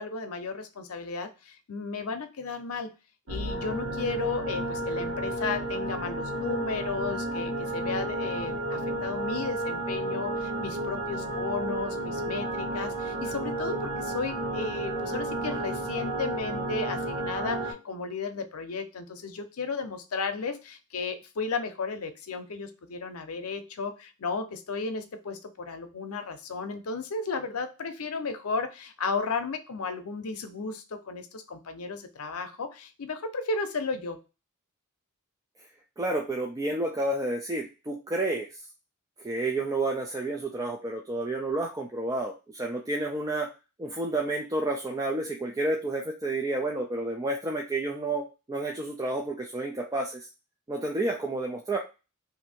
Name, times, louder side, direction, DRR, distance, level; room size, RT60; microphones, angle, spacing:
voice 1, 0.0-2.9 3.3-34.2, left 4 dB, 80° left, 8 dB, 0.6 m, -34 dB
sound 1, 3.3-17.7, right 1 dB, 85° right, 1.3 m, -32 dB
voice 2, 36.0-38.5 39.2-43.5 43.8-50.3 50.7-51.8, right 2 dB, 15° right, 0 dB, 0.4 m, -30 dB
2.7 x 2.6 x 4.2 m, 0.30 s
head